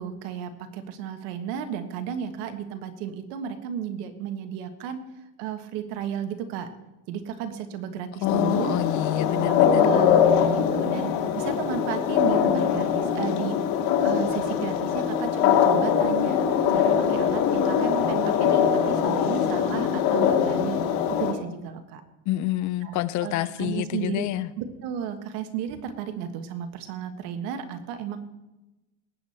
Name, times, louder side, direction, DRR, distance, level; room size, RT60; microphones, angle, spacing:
voice 1, 0.0-5.0 5.4-6.7 7.1-8.8 9.3-13.6 14.0-16.4 16.7-20.8 21.2-22.0 22.8-24.3 24.6-28.2, right 8 dB, 80° right, 9 dB, 1.7 m, -33 dB
sound 1, 8.2-21.3, left 8 dB, 80° left, 2.0 m, -22 dB
voice 2, 8.2-9.8 22.3-24.5, left 15 dB, 40° left, 16 dB, 0.4 m, -27 dB
19.0 x 8.2 x 4.3 m, 1.0 s
cardioid pair, 150°, 47 cm